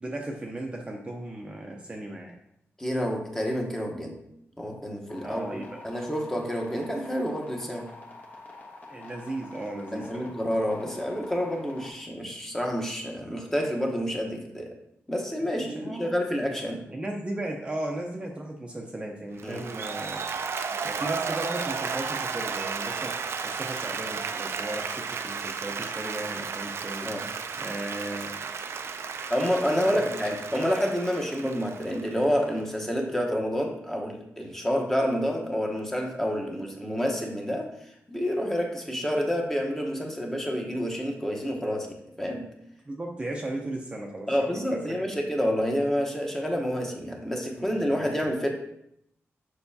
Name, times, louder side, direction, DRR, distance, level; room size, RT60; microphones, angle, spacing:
voice 1, 0.0-2.3 5.2-5.8 8.9-10.3 15.6-16.1 16.9-20.3 20.8-23.2 23.4-27.1 27.6-28.4 29.8-30.1 42.9-45.2 47.6-48.2, right 1 dB, 20° right, 0 dB, 0.6 m, -36 dB
voice 2, 2.8-4.1 4.6-7.9 9.9-14.7 15.1-16.8 19.4-19.6 27.1-27.2 29.3-37.7 38.1-42.5 44.3-48.5, equal, 10° left, 0 dB, 1.0 m, -28 dB
sound 1, 5.1-11.9, left 3 dB, 35° left, 1.0 m, -47 dB
Applause, 19.4-32.6, right 5 dB, 60° right, 0.4 m, -33 dB
6.8 x 5.5 x 2.7 m, 0.77 s
wide cardioid pair, 140°, 5 cm